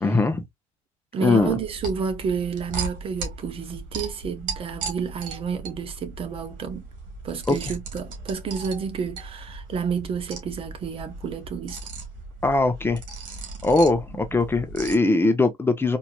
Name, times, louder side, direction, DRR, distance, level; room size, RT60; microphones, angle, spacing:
voice 1, 0.0-0.4 1.2-1.6 7.5-7.6 12.4-13.0 13.6-16.0, left 3 dB, 15° left, 0.9 m, -21 dB
voice 2, 1.1-6.9 7.2-11.8 14.3-14.4, right 6 dB, 40° right, 0.9 m, -30 dB
sound 1, 1.4-14.9, right 3 dB, 75° right, 1.8 m, -37 dB
4.3 x 2.9 x 2.3 m
supercardioid pair, 100°, 14 cm